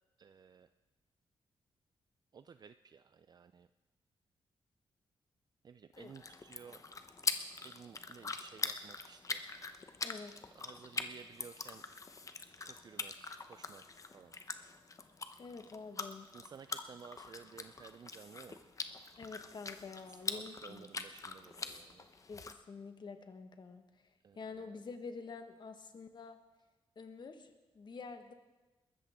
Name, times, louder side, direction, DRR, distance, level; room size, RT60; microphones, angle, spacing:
voice 1, 0.2-0.7 2.3-3.7 5.6-6.8 7.6-9.4 10.6-11.8 12.6-13.8 14.1-14.3 16.3-18.6 20.3-22.0 24.2-24.4, right 6 dB, 45° right, 12 dB, 0.4 m, -55 dB
sound 1, 5.9-22.5, left 4 dB, 35° left, 0.9 m, -43 dB
voice 2, 10.0-10.3 15.4-16.3 19.2-20.9 22.3-23.8 24.3-26.4 26.9-28.3, left 4 dB, 50° left, 7 dB, 1.4 m, -48 dB
21.5 x 14.0 x 3.6 m, 1.1 s
cardioid pair, 100°, 10 cm